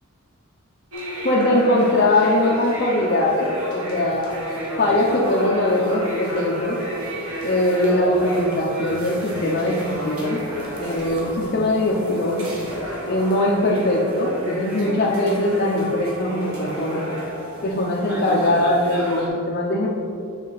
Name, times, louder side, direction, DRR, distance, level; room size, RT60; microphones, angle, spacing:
sound 1, 0.9-19.3, equal, 70° right, 1.5 m, -31 dB
voice 1, 1.2-4.3 4.8-6.8 7.4-10.4 10.8-12.4 13.1-17.1 17.6-19.9, left 1 dB, 45° left, -4 dB, 0.7 m, -21 dB
7.4 x 5.3 x 4.0 m, 2.7 s
head